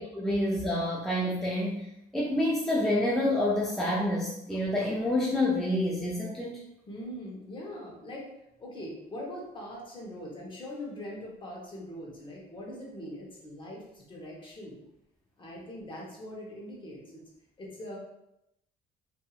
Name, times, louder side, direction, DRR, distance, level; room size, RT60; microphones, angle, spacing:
voice 1, 0.0-6.6, left 1 dB, ahead, -5 dB, 0.4 m, -28 dB
voice 2, 6.9-8.3 8.6-14.8 15.4-17.2 17.6-18.0, left 1 dB, 30° left, -3 dB, 0.9 m, -42 dB
2.6 x 2.6 x 2.4 m, 0.83 s
cardioid pair, 110°, 17 cm